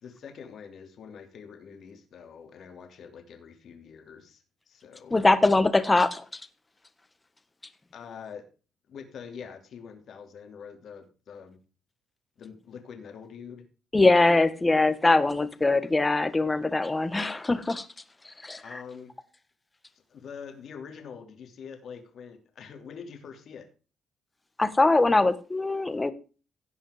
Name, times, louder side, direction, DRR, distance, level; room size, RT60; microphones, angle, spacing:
voice 1, 0.0-5.2 7.9-8.4 8.9-11.6 12.4-13.6 18.6-19.1 20.1-23.7, left 6 dB, 65° left, 6 dB, 2.9 m, -45 dB
voice 2, 5.1-6.2 13.9-17.9 18.4-18.8 24.6-26.1, left 2 dB, 20° left, 13 dB, 1.4 m, -22 dB
16.5 x 5.7 x 5.0 m, 0.35 s
cardioid pair, 90°, 0 cm